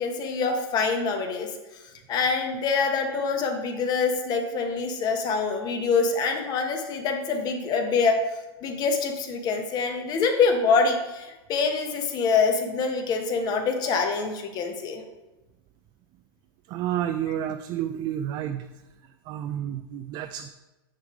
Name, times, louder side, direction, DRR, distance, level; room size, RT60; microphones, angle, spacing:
voice 1, 0.0-1.5 2.1-8.2 8.6-15.0, left 4 dB, 30° left, 5 dB, 1.0 m, -25 dB
voice 2, 16.7-18.7 19.3-20.5, right 10 dB, 35° right, 8 dB, 0.4 m, -30 dB
9.5 x 3.3 x 5.0 m, 1.1 s
hypercardioid pair, 130°, 13 cm